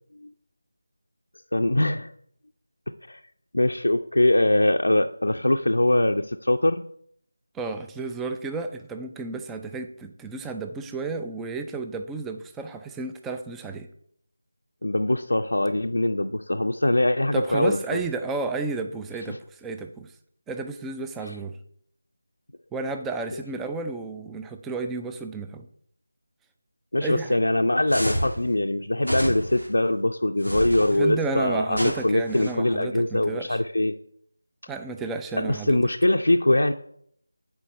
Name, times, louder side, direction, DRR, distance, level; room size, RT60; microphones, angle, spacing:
voice 1, 1.5-2.1 3.1-3.2 3.5-6.8 14.8-18.0 19.3-19.4 23.3-23.4 26.9-33.9 35.3-36.7, left 1 dB, 70° left, 4 dB, 0.4 m, -22 dB
voice 2, 7.5-13.9 17.3-20.1 20.5-21.6 22.7-25.7 27.0-27.4 30.9-33.6 34.7-35.8, right 4 dB, 5° right, 7 dB, 0.3 m, -32 dB
sound 1, 27.9-28.4 29.0-29.7 30.4-31.0 31.7-32.5, equal, 80° right, 2.8 m, -30 dB
6.9 x 4.5 x 6.6 m, 0.66 s
figure-of-eight pair, 165°, 0 cm